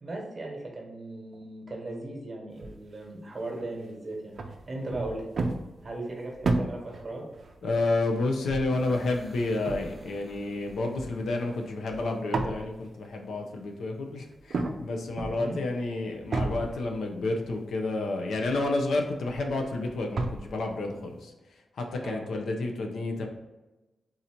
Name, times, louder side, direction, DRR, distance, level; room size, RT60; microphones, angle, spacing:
voice 1, 0.0-4.3 4.7-5.2 5.8-7.3 15.3-15.6 22.0-22.2, right 2 dB, 30° right, -1 dB, 1.1 m, -37 dB
sound 1, 2.6-2.7 3.6-3.8 4.4-12.0 12.3-12.8 14.4-14.8 15.2-15.8 16.3-17.6 18.0-18.1 18.4-20.7, right 3 dB, 50° right, 0.5 m, -33 dB
voice 2, 7.6-21.3 21.7-23.3, left 2 dB, 85° left, 3 dB, 0.7 m, -30 dB
sound 2, 8.7-12.6, right 1 dB, 15° right, 0.7 m, -52 dB
3.9 x 2.8 x 4.4 m, 1.1 s
wide cardioid pair, 165°, 0 cm